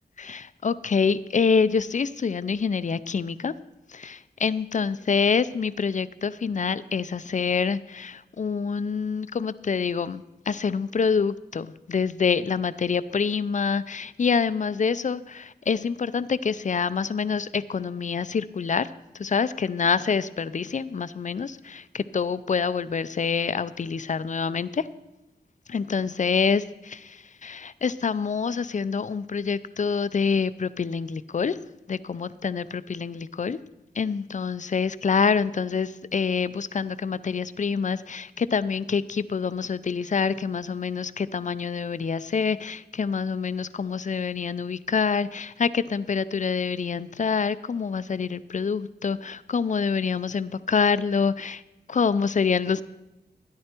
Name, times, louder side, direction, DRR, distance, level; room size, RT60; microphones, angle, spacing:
voice 1, 0.2-3.5 3.9-24.9 25.7-26.6 26.9-31.6 31.9-33.6 34.0-51.6 51.9-52.8, left 5 dB, 45° left, 16 dB, 0.4 m, -26 dB
13.0 x 10.5 x 4.4 m, 0.98 s
wide cardioid pair, 95°, 17 cm